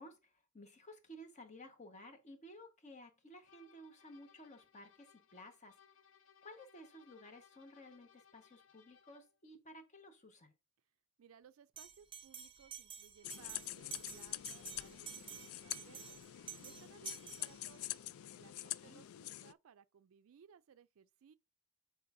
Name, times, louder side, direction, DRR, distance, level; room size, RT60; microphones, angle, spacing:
voice 1, 0.0-5.8 6.4-10.5 18.8-19.0, left 1 dB, 35° left, 1.2 m, -55 dB
sound 1, 3.4-9.4, left 7 dB, 65° left, 0.7 m, -66 dB
voice 2, 11.2-16.2 16.6-17.9 18.3-21.4, right 7 dB, 80° right, 0.4 m, -63 dB
Bell, 11.8-18.0, right 8 dB, 25° right, 0.7 m, -51 dB
sound 2, 13.2-19.5, left 14 dB, 85° left, 0.3 m, -46 dB
8.6 x 4.6 x 2.6 m
head